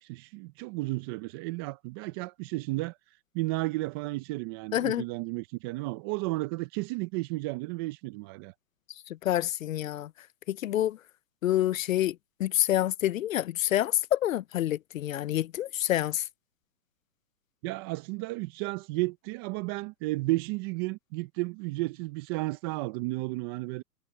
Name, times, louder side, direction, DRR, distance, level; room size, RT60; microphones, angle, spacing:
voice 1, 0.0-3.0 3.3-8.5 17.6-23.8, right 21 dB, 15° right, 0.5 m, -33 dB
voice 2, 4.7-5.0 9.2-10.1 10.5-11.0 11.4-12.1 12.4-16.2, left 13 dB, 55° left, 0.8 m, -27 dB
hypercardioid pair, 130°, 49 cm